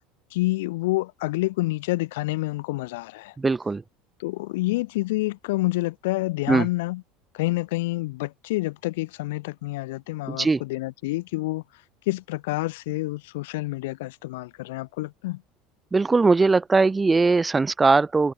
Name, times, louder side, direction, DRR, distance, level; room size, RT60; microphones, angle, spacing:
voice 1, 0.3-3.3 4.2-7.0 7.3-11.6 12.1-15.4, left 20 dB, 65° left, 4.4 m, -28 dB
voice 2, 3.4-3.8 6.5-6.7 10.3-10.6 15.9-18.3, right 3 dB, 15° right, 3.8 m, -20 dB
figure-of-eight pair, 70°, 0 cm